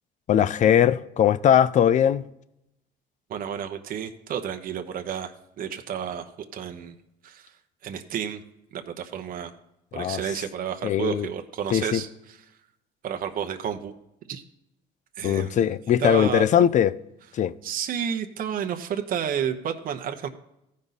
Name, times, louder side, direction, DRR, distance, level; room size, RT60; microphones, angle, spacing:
voice 1, 0.3-2.2 9.9-10.2 10.8-11.3 11.7-12.0 15.2-17.0 17.3-17.5, left 9 dB, 45° left, 0.5 m, -20 dB
voice 2, 3.3-7.0 7.2-7.6 7.8-8.4 8.7-9.5 9.9-12.1 13.0-13.9 14.3-14.4 15.2-15.7 16.0-16.5 17.6-20.3, right 8 dB, 55° right, 0.9 m, -31 dB
15.0 x 5.3 x 4.1 m
cardioid pair, 110°, 17 cm